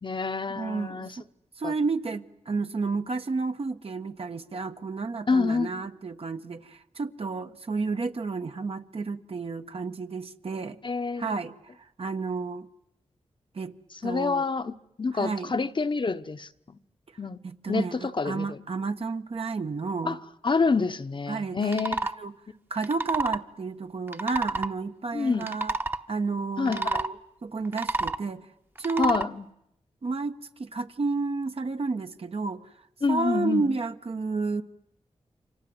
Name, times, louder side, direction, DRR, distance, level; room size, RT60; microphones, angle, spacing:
voice 1, 0.0-1.1 1.6-1.7 5.3-5.7 10.8-11.3 14.0-16.8 17.2-17.4 17.7-18.6 20.1-20.2 20.4-22.0 25.1-25.5 26.6-27.0 29.0-29.5 33.0-33.8, left 4 dB, 45° left, 1.0 m, -27 dB
voice 2, 0.5-1.2 1.6-10.8 11.2-11.5 12.0-12.7 13.5-13.7 14.0-14.4 15.1-15.5 17.4-20.2 21.3-22.3 22.7-25.8 26.1-27.2 27.4-28.4 28.8-29.2 30.0-32.6 33.1-34.6, right 4 dB, 60° right, 1.3 m, -31 dB
sound 1, 21.6-22.1 22.8-23.4 24.1-24.7 25.3-26.0 26.7-27.1 27.6-28.2 28.8-29.3, right 3 dB, 20° right, 1.1 m, -29 dB
29.0 x 25.0 x 7.9 m
cardioid pair, 50°, 11 cm